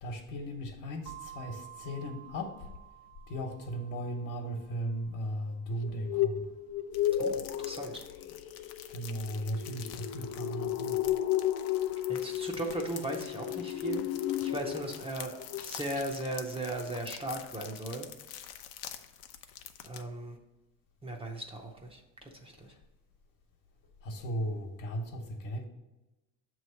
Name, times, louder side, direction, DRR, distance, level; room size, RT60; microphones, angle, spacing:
voice 1, 0.0-2.7 3.3-6.5 8.9-11.0 22.6-22.8 24.0-25.6, equal, 60° left, 1.2 m, -37 dB
sound 1, 1.1-8.9, right 11 dB, 75° right, 1.0 m, -53 dB
sound 2, 5.8-15.1 15.4-15.7 16.0-16.1, left 11 dB, 40° left, 0.4 m, -33 dB
sound 3, 6.9-20.0, left 10 dB, 80° left, 0.6 m, -47 dB
voice 2, 7.2-8.0 12.1-14.0 14.4-18.1 19.8-20.4 21.0-22.7, right 2 dB, 15° right, 0.7 m, -37 dB
7.3 x 3.1 x 5.6 m
cardioid pair, 140°, 36 cm